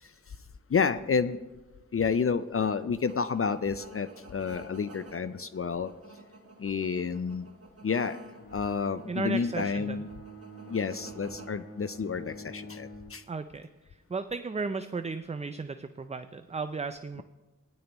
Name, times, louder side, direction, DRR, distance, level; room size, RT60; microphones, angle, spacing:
voice 1, 0.7-1.4 1.9-5.9 6.6-7.5 7.8-8.2 8.5-10.1 10.7-13.2, left 5 dB, 45° left, 13 dB, 0.5 m, -30 dB
sound 1, 3.1-11.5, right 2 dB, 45° right, 1.4 m, -52 dB
Bowed string instrument, 8.3-13.2, right 2 dB, 75° left, 1.4 m, -46 dB
voice 2, 9.1-10.0 13.3-13.7 14.1-17.2, right 4 dB, 20° right, 10 dB, 0.4 m, -34 dB
16.0 x 10.5 x 3.0 m, 1.1 s
cardioid pair, 50°, 33 cm